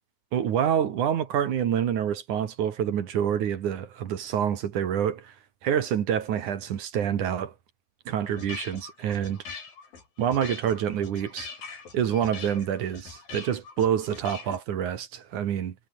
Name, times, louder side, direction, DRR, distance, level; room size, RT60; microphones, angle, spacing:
voice 1, 0.3-5.3 5.6-7.5 8.1-9.4 10.2-11.5 11.9-15.7, right 9 dB, 55° right, 2.8 m, -27 dB
sound 1, 8.1-14.6, left 5 dB, 60° left, 7.0 m, -42 dB
omnidirectional pair, 4.6 m